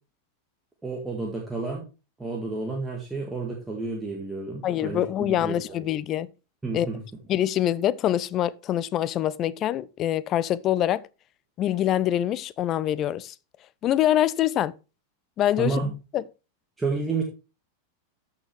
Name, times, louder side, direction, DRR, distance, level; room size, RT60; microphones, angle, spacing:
voice 1, 0.8-1.9 2.2-5.8 6.6-7.0 15.6-15.9 16.8-17.2, right 3 dB, 10° right, 1.9 m, -30 dB
voice 2, 4.6-6.3 6.7-6.9 7.3-11.0 11.6-13.3 13.8-14.7 15.4-15.8 16.1-16.2, left 12 dB, 30° left, 0.5 m, -24 dB
13.5 x 5.7 x 3.4 m
figure-of-eight pair, 90°, 0 cm